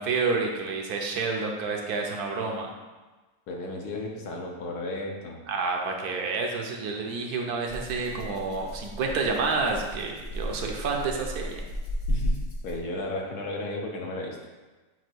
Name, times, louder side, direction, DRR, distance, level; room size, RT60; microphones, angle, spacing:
voice 1, 0.0-2.7 5.5-11.6, right 4 dB, 70° right, 1 dB, 1.2 m, -29 dB
voice 2, 3.5-5.4 12.1-12.4 12.6-14.4, left 2 dB, 70° left, 0 dB, 1.4 m, -34 dB
Rattle (instrument), 7.7-13.0, equal, 45° left, 0.4 m, -34 dB
7.9 x 2.7 x 4.5 m, 1.2 s
omnidirectional pair, 1.8 m